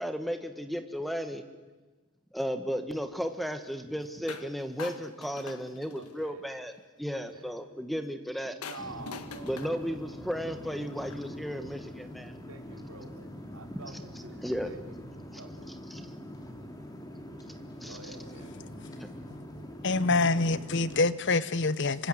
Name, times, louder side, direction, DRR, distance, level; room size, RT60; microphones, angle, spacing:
voice 1, 0.0-1.4 2.3-6.7 7.0-8.6 9.4-12.3 14.4-14.7 15.3-15.4 15.9-16.1 17.8-18.0 19.0-19.1, equal, ahead, 8 dB, 1.5 m, -34 dB
sound 1, 4.3-4.5 4.8-6.3 8.6-11.3, left 4 dB, 85° left, 1.6 m, -44 dB
voice 2, 5.9-6.4 7.1-7.5 8.5-10.0 12.5-13.1 13.5-13.9 14.2-14.8 15.4-15.7 17.9-18.7, right 3 dB, 70° right, 5 dB, 3.0 m, -48 dB
sound 2, 8.8-21.1, equal, 15° left, 2.7 m, -44 dB
voice 3, 19.8-22.1, left 3 dB, 55° left, 16 dB, 0.9 m, -26 dB
26.0 x 24.5 x 8.1 m, 1.3 s
head